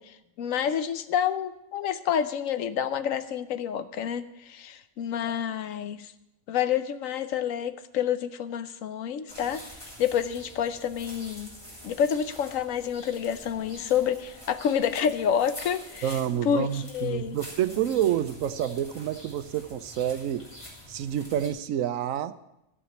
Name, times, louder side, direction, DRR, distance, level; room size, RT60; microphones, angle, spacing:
voice 1, 0.0-6.1 6.5-9.6 10.0-11.5 11.8-16.2 16.4-17.4, left 8 dB, 75° left, 12 dB, 1.1 m, -28 dB
sound 1, 9.3-21.5, left 1 dB, 20° left, 3.3 m, -46 dB
voice 2, 16.0-20.5 20.9-22.3, right 10 dB, 75° right, 13 dB, 1.0 m, -28 dB
14.5 x 5.0 x 8.0 m, 0.86 s
omnidirectional pair, 1.4 m